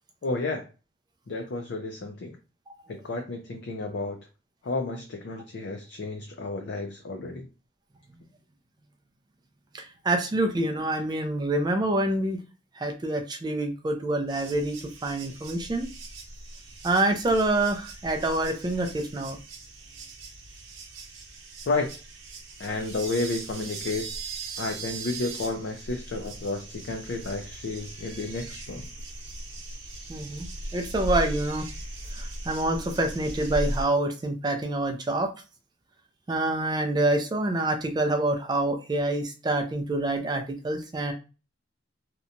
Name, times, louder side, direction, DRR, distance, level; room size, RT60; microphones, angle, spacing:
voice 1, 0.2-0.7 1.3-2.4 2.9-4.2 4.6-7.5 21.7-21.9 22.6-24.1 24.6-28.9, left 3 dB, 60° left, 4 dB, 0.4 m, -31 dB
voice 2, 9.7-12.4 12.8-14.8 15.0-15.9 16.8-19.4 30.1-31.7 32.2-35.3 36.3-41.1, right 2 dB, 20° right, 5 dB, 0.3 m, -26 dB
sound 1, 14.3-33.8, right 2 dB, 85° right, 0.8 m, -38 dB
2.8 x 2.1 x 2.5 m, 0.32 s
head